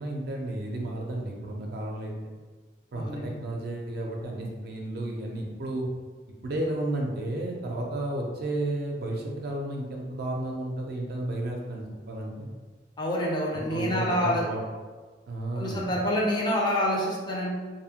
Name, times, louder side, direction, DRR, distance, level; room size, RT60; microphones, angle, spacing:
voice 1, 0.0-2.1 2.9-5.9 6.4-12.5 13.7-14.6 15.3-15.9, right 1 dB, 55° right, 0 dB, 0.4 m, -32 dB
voice 2, 2.9-3.3 13.0-14.4 15.6-17.5, equal, 25° left, -3 dB, 0.4 m, -27 dB
2.6 x 2.0 x 2.8 m, 1.4 s
head